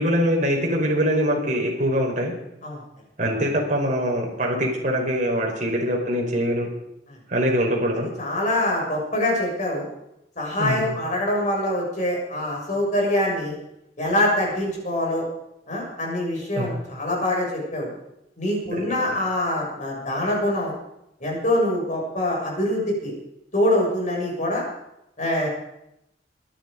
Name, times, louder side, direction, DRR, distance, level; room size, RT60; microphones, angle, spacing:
voice 1, 0.0-2.3 3.2-6.7 7.3-8.1 10.6-10.8 16.6-16.7 18.8-19.1, equal, 45° right, 0 dB, 4.9 m, -23 dB
voice 2, 8.2-9.9 10.3-13.5 14.0-15.2 15.7-18.0 18.4-20.8 21.2-23.1 23.5-24.6 25.2-25.5, left 1 dB, 45° left, -2 dB, 6.8 m, -24 dB
24.0 x 11.5 x 5.3 m, 0.83 s
head